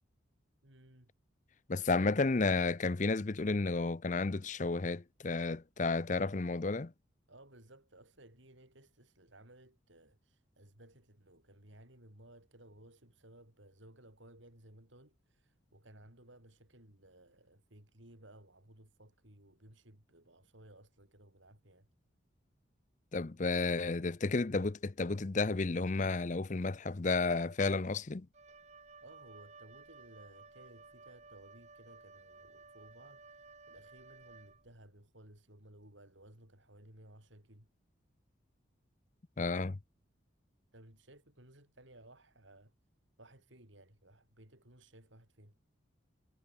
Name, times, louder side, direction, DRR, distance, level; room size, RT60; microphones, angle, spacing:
voice 1, 0.6-1.1 7.3-21.9 29.0-37.7 40.7-42.7 43.2-45.6, right 1 dB, 70° right, 6.7 m, -59 dB
voice 2, 1.7-6.9 23.1-28.3 39.4-39.8, left 3 dB, 40° left, 0.6 m, -32 dB
Wind instrument woodwind instrument, 28.3-34.9, right 4 dB, 35° right, 1.9 m, -56 dB
head